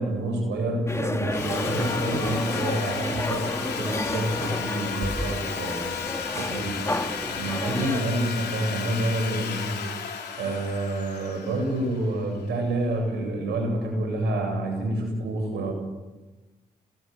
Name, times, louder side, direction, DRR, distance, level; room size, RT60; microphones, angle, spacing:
voice 1, 0.0-6.0 6.3-6.9 7.2-9.8 10.4-15.7, right 1 dB, 75° right, 3 dB, 7.9 m, -28 dB
sound 1, 0.9-8.0, left 1 dB, 15° left, 2.8 m, -31 dB
Sawing, 1.3-12.4, left 7 dB, 75° left, 3.1 m, -34 dB
sound 2, 5.5-12.4, left 3 dB, 45° left, 5.9 m, -46 dB
28.0 x 19.0 x 6.9 m, 1.1 s
hypercardioid pair, 40°, 18 cm